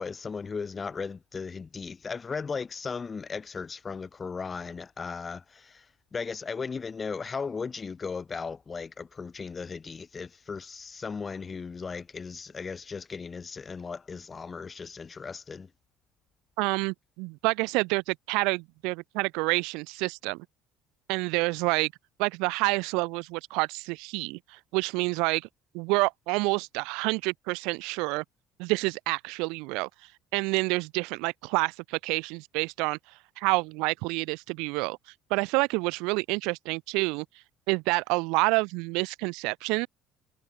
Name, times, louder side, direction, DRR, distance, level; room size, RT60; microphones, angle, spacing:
voice 1, 0.0-5.9 6.1-15.7, left 5 dB, 25° left, 0.5 m, -36 dB
voice 2, 16.6-20.5 21.1-21.9 22.2-25.5 25.7-28.2 28.6-29.9 30.3-33.0 33.4-35.0 35.3-37.3 37.7-39.9, right 27 dB, 80° right, 0.5 m, -28 dB
supercardioid pair, 100°, 0 cm